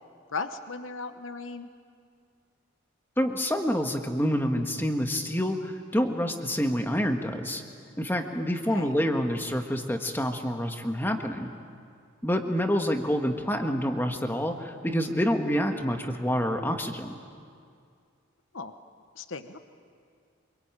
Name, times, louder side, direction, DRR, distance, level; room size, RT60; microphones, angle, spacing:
voice 1, 0.3-1.7 8.7-9.0 18.5-18.7 19.1-19.6, left 4 dB, 70° left, 9 dB, 1.1 m, -36 dB
voice 2, 3.2-7.6 8.0-11.5 12.2-17.2, equal, 10° left, 4 dB, 1.5 m, -27 dB
26.0 x 24.0 x 9.0 m, 2.2 s
head